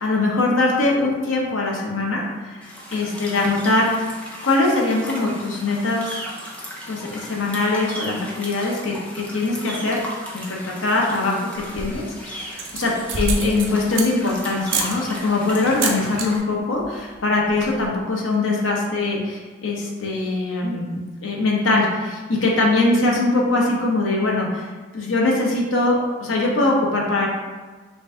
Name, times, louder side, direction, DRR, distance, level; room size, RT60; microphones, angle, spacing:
voice 1, 0.0-4.0 4.4-6.2 6.9-10.0 10.3-24.7 24.9-27.3, left 2 dB, 85° left, -2 dB, 0.9 m, -22 dB
sound 1, 2.6-16.4, equal, 5° left, 0.5 m, -36 dB
sound 2, 11.6-12.1 12.5-14.3 14.7-14.9 15.6-16.3 16.6-16.9 17.1-17.2 17.4-17.9, right 4 dB, 90° right, 0.6 m, -27 dB
5.3 x 2.2 x 3.6 m, 1.3 s
head